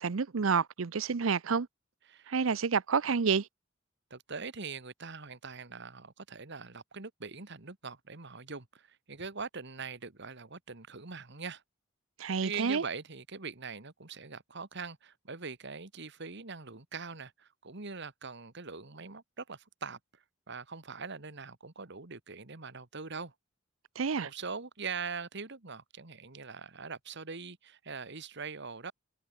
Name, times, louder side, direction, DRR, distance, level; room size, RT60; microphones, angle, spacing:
voice 1, 0.0-1.7 2.3-3.5 12.2-12.8 24.0-24.3, right 5 dB, 85° right, 0.6 m, -29 dB
voice 2, 4.1-11.6 12.4-23.3 24.2-28.9, right 5 dB, 60° right, 2.0 m, -42 dB
head